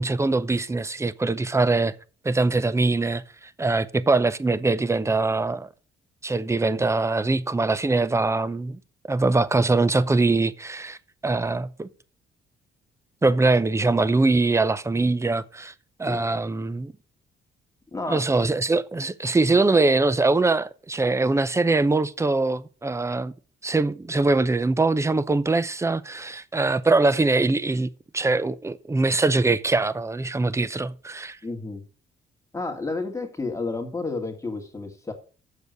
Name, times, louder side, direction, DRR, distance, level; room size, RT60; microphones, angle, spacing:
voice 1, 0.0-1.9 2.2-5.7 6.2-8.8 9.1-11.0 11.2-11.9 13.2-15.7 16.0-16.9 18.1-23.3 23.6-31.4, right 3 dB, 15° right, 0.6 m, -22 dB
voice 2, 17.9-18.2 31.4-31.8 32.5-35.1, left 3 dB, 15° left, 2.1 m, -31 dB
7.0 x 6.8 x 6.2 m
cardioid pair, 90°, 20 cm